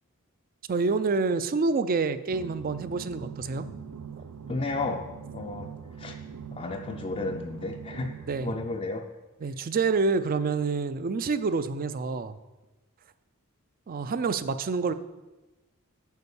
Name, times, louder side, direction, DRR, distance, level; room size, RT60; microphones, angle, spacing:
voice 1, 0.7-3.8 8.3-8.5 9.4-12.4 13.9-14.9, right 4 dB, 40° right, 13 dB, 0.4 m, -27 dB
sound 1, 2.3-8.8, right 7 dB, 85° right, 0.6 m, -42 dB
voice 2, 4.5-6.2 6.5-8.1 8.4-9.1, left 3 dB, 25° left, 2 dB, 0.4 m, -33 dB
8.2 x 5.3 x 7.0 m, 1.1 s
head